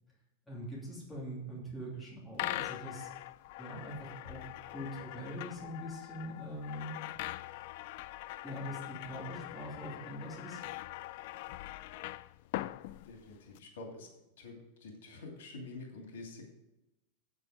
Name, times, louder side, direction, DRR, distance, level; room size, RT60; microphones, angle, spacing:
voice 1, 0.5-3.1 3.6-6.9 8.4-10.6, equal, 5° left, -6 dB, 2.8 m, -43 dB
sound 1, 2.3-13.6, left 16 dB, 50° left, 0.3 m, -42 dB
voice 2, 13.0-14.1 14.4-16.5, left 3 dB, 90° left, 2 dB, 2.7 m, -47 dB
8.8 x 8.2 x 4.9 m, 0.92 s
supercardioid pair, 165°, 0 cm